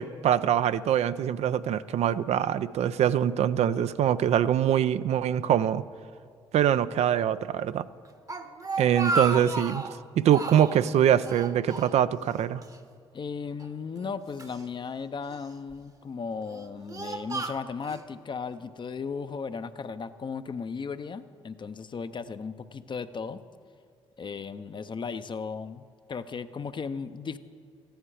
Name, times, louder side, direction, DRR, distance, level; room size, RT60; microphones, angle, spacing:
voice 1, 0.0-5.8 6.5-7.9 8.8-9.8 10.2-12.6, right 10 dB, 60° right, 14 dB, 0.4 m, -24 dB
Speech, 8.0-10.0 10.3-10.9 11.2-12.4 12.6-12.8 13.6-14.6 15.3-15.7 16.4-18.0, right 2 dB, 30° right, 0.9 m, -33 dB
voice 2, 13.1-23.4 24.2-27.4, left 5 dB, 40° left, 12 dB, 0.6 m, -36 dB
14.5 x 10.0 x 4.9 m, 2.1 s
hypercardioid pair, 50°, 12 cm